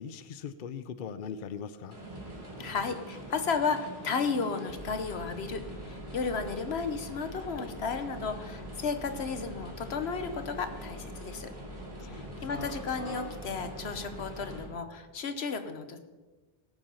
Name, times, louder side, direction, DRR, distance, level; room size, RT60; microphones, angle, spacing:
voice 1, 0.0-2.0 12.0-12.7, left 7 dB, 60° left, 12 dB, 0.7 m, -41 dB
sound 1, 1.9-14.7, equal, 85° right, 3.7 m, -43 dB
voice 2, 2.6-11.5 12.0-16.0, left 5 dB, 80° left, 8 dB, 1.3 m, -33 dB
17.5 x 7.6 x 5.6 m, 1.3 s
omnidirectional pair, 1.1 m